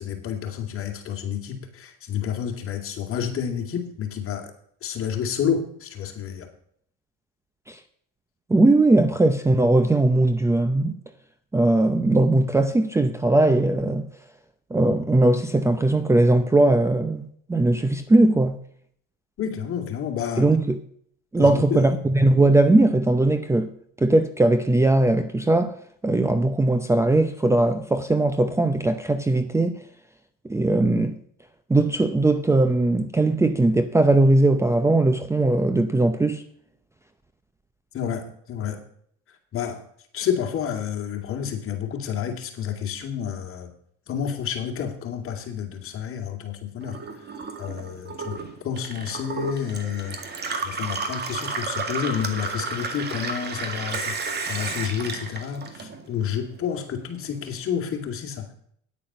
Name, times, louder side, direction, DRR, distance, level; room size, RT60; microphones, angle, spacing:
voice 1, 0.0-4.5 4.8-6.5 19.4-20.5 21.4-21.9 37.9-38.8 39.5-39.8 40.1-43.7 44.1-47.0 47.6-48.4 48.6-50.2 50.6-58.5, left 8 dB, 45° left, 2.6 m, -29 dB
voice 2, 8.5-10.9 11.5-14.1 14.7-17.2 17.5-18.6 20.4-20.8 21.3-23.7 24.0-25.8 26.0-29.8 30.4-31.1 31.7-36.4, right 2 dB, 10° right, 0.7 m, -19 dB
Gurgling / Water tap faucet / Sink (filling or washing), 46.8-56.3 56.6-57.5, right 4 dB, 30° right, 2.0 m, -32 dB
9.5 x 8.8 x 6.1 m
supercardioid pair, 105°, 31 cm